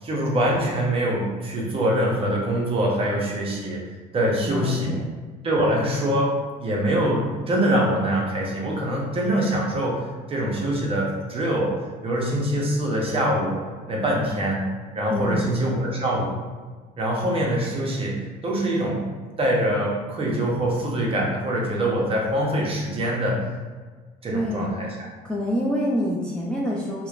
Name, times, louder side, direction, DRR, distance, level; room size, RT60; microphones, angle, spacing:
voice 1, 0.0-3.8 4.1-4.9 5.4-11.7 12.0-13.6 13.9-14.6 14.9-16.3 17.0-18.1 18.4-19.0 19.4-23.4 24.2-25.1, right 1 dB, 35° right, -2 dB, 0.7 m, -24 dB
voice 2, 4.5-5.1 15.1-15.5 24.3-24.7 25.2-27.1, equal, 5° left, -5 dB, 0.3 m, -26 dB
2.8 x 2.1 x 2.4 m, 1.4 s
cardioid pair, 110°, 17 cm